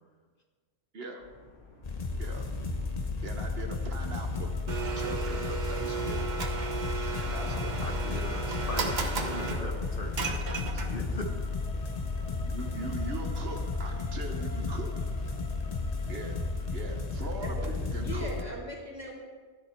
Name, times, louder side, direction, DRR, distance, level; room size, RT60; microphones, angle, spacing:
voice 1, 0.9-1.3 2.2-2.5 3.2-4.5 4.9-6.3 7.2-8.0 12.3-14.9 16.1-16.4 16.7-18.4, right 2 dB, 65° right, 3 dB, 1.3 m, -41 dB
sound 1, 1.2-14.7, left 1 dB, 70° left, 2.6 m, -55 dB
sound 2, 1.8-18.4, left 3 dB, 35° left, 1.1 m, -33 dB
Domestic sounds home sounds, 4.7-11.2, right 5 dB, 45° right, 1.0 m, -35 dB
voice 2, 7.8-11.3, left 2 dB, 55° left, 2 dB, 1.3 m, -39 dB
voice 3, 17.4-17.7 18.0-19.1, right 1 dB, 15° right, -4 dB, 2.7 m, -39 dB
13.0 x 10.0 x 4.5 m, 1.5 s
omnidirectional pair, 1.1 m